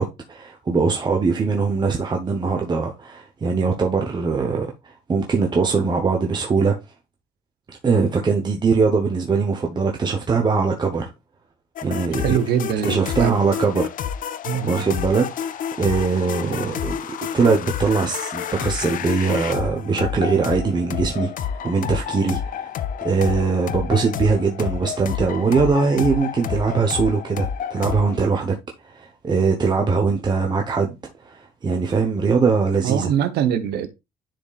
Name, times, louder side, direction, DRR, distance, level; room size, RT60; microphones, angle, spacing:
voice 1, 0.0-6.8 7.7-11.1 11.8-12.4 12.8-13.8 14.6-17.0 17.3-22.7 23.0-28.5 28.8-33.1, right 4 dB, 25° right, 1.0 m, -21 dB
sound 1, 11.8-28.2, left 8 dB, 55° left, 0.6 m, -29 dB
voice 2, 12.2-13.4 14.4-14.9 32.8-33.9, right 9 dB, 75° right, 1.1 m, -23 dB
10.5 x 4.3 x 2.4 m
cardioid pair, 110°, 17 cm